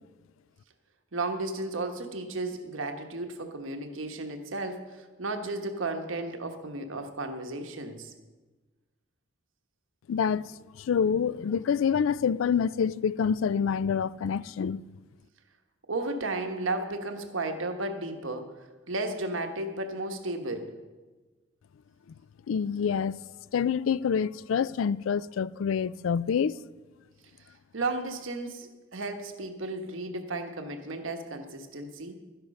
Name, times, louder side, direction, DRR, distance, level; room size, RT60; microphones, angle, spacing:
voice 1, 1.1-8.1 15.9-18.6 18.9-20.7 27.7-32.2, right 2 dB, 85° right, 1.3 m, -34 dB
voice 2, 10.1-10.5 10.8-14.8 22.5-23.2 23.5-26.5, left 7 dB, 80° left, 0.3 m, -27 dB
12.5 x 10.5 x 5.4 m
head